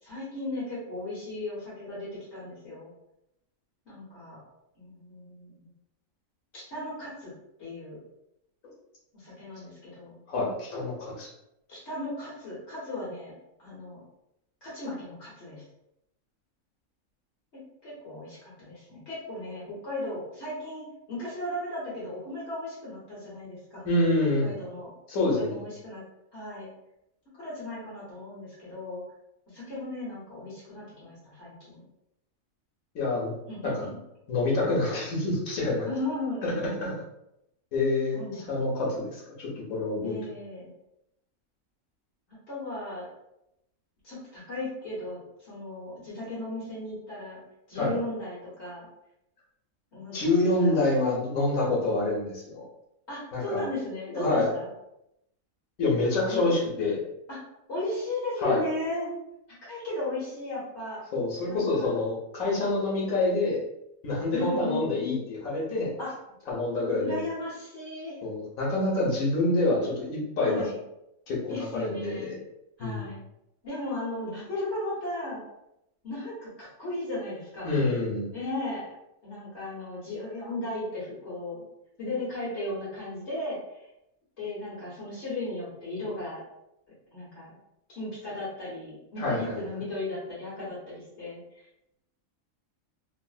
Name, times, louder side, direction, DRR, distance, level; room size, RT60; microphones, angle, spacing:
voice 1, 0.0-2.9 3.8-4.4 4.7-5.7 6.5-7.3 7.6-8.0 9.1-10.2 11.7-13.3 13.6-14.0 14.6-15.6 17.8-23.8 24.4-24.9 25.2-26.0 26.3-26.7 27.3-29.0 29.5-31.9 33.5-34.0 35.8-36.5 38.1-38.5 40.0-40.7 42.5-43.1 44.0-47.4 47.7-48.9 49.9-50.8 53.1-54.7 56.3-56.5 57.3-57.4 57.7-59.1 59.7-61.0 61.5-62.0 64.3-64.9 66.0-66.1 67.0-68.2 70.4-70.8 71.5-72.3 72.8-73.2 73.6-75.4 76.0-77.8 78.3-78.9 79.2-81.6 82.0-83.8 84.4-86.4 87.1-87.5 87.9-91.6, left 2 dB, 55° left, -8 dB, 1.4 m, -36 dB
voice 2, 10.3-11.3 23.8-24.6 25.1-25.6 32.9-33.3 33.6-33.9 34.3-35.9 36.4-36.5 36.8-37.0 37.7-40.2 47.8-47.9 50.1-52.7 53.3-53.6 54.1-54.5 55.8-57.0 58.4-58.6 61.1-63.6 64.0-65.9 66.5-67.2 68.2-70.7 71.3-72.4 72.8-73.1 77.6-78.2 89.2-89.6, left 2 dB, 75° left, -3 dB, 1.3 m, -27 dB
3.7 x 2.1 x 2.4 m, 0.84 s
omnidirectional pair, 1.5 m